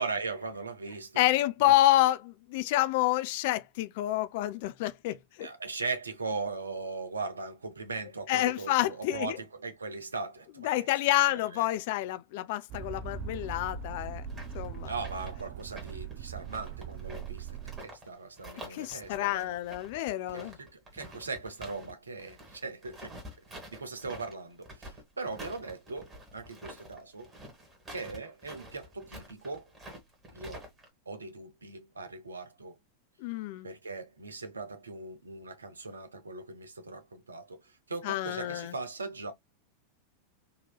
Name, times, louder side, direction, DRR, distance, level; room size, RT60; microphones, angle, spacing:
voice 1, 0.0-1.4 1.7-1.8 5.4-10.9 11.3-11.7 14.8-17.6 17.8-19.5 20.3-23.2 23.5-27.3 27.9-29.7 30.3-30.7 31.1-32.7 33.6-39.3, right 4 dB, 75° right, 0.8 m, -39 dB
voice 2, 1.2-5.5 8.3-9.4 10.6-14.2 14.5-14.9 18.7-20.6 33.2-33.7 38.0-38.7, left 15 dB, 50° left, 0.4 m, -28 dB
sound 1, 12.7-17.8, right 6 dB, 40° right, 0.7 m, -40 dB
sound 2, 14.3-18.1 18.4-21.9 22.2-30.9, equal, 20° right, 1.8 m, -48 dB
4.0 x 2.9 x 2.2 m
figure-of-eight pair, 90°, 0 cm